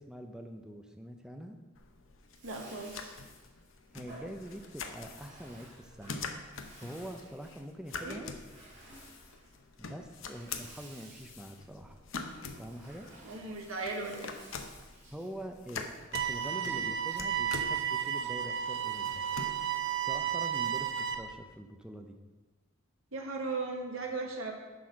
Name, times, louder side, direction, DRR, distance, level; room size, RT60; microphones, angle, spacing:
voice 1, 0.0-1.6 3.9-6.2 6.8-8.3 9.8-12.0 12.6-13.1 15.1-19.3 20.0-22.2, equal, 5° right, 4 dB, 0.5 m, -44 dB
sound 1, 1.7-21.4, left 4 dB, 70° left, 0.8 m, -46 dB
Bathtub (filling or washing), 2.2-17.3, right 1 dB, 40° right, 3.2 m, -56 dB
voice 2, 2.4-3.1 8.0-8.2 13.2-14.3 23.1-24.5, right 3 dB, 85° right, 2 dB, 1.5 m, -37 dB
sound 2, 16.1-21.2, right 9 dB, 60° right, 0.7 m, -33 dB
10.5 x 4.1 x 6.3 m, 1.3 s
head